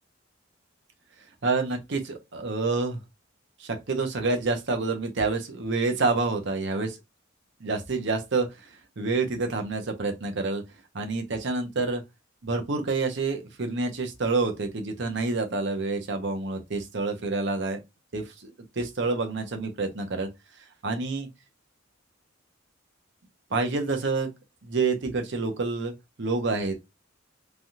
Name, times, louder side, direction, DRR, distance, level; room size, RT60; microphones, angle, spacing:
voice 1, 1.4-3.0 3.6-7.0 7.6-8.5 9.0-10.6 10.9-12.0 12.4-17.8 18.1-18.5 18.8-20.3 20.8-21.3 23.5-24.3 24.6-25.9 26.2-27.0, right 3 dB, 60° right, 0.8 m, -28 dB
3.3 x 2.3 x 2.7 m
head